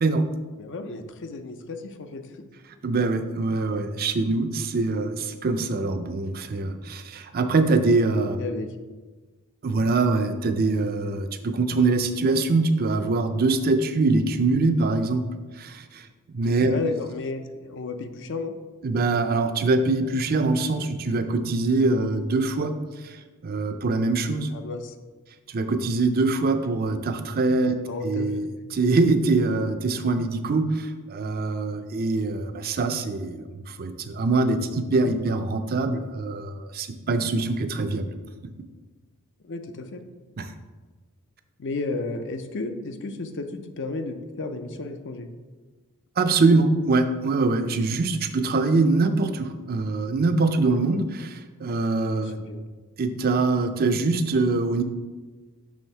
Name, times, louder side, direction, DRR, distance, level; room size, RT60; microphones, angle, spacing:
voice 1, 0.6-2.3 8.4-8.7 16.6-18.5 24.5-24.9 27.9-28.3 39.4-40.0 41.6-45.3 52.2-52.6, left 3 dB, 55° left, 8 dB, 0.6 m, -33 dB
voice 2, 2.8-8.4 9.6-15.3 15.6-16.1 16.3-16.7 18.8-22.7 23.0-23.2 23.4-24.5 25.5-27.8 28.0-38.1 40.4-40.5 46.2-52.4 53.0-54.8, right 3 dB, 45° right, 8 dB, 0.5 m, -23 dB
6.3 x 3.6 x 5.4 m, 1.3 s
head